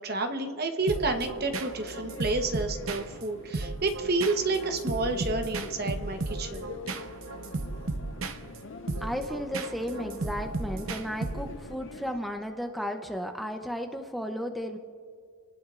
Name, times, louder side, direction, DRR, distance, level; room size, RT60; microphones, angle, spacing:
voice 1, 0.0-6.7, right 3 dB, 45° right, 6 dB, 1.0 m, -30 dB
sound 1, 0.9-11.7, right 3 dB, 75° right, 0.8 m, -35 dB
sound 2, 1.1-12.2, left 4 dB, 60° left, 0.5 m, -46 dB
voice 2, 9.0-14.8, equal, ahead, 3 dB, 0.6 m, -34 dB
29.5 x 18.5 x 2.5 m, 2.2 s
head